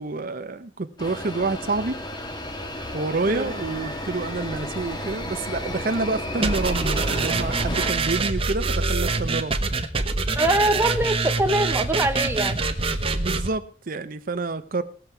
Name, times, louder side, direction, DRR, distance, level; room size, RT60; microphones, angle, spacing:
voice 1, 0.0-2.0 2.9-9.6 13.1-14.8, right 3 dB, 50° right, 9 dB, 0.7 m, -28 dB
sound 1, 1.0-7.9, left 1 dB, 25° left, 1.4 m, -33 dB
sound 2, 6.4-13.5, right 3 dB, 30° right, 1.2 m, -25 dB
voice 2, 10.4-12.6, right 1 dB, 15° right, 6 dB, 0.9 m, -23 dB
20.0 x 7.3 x 4.6 m, 0.38 s
head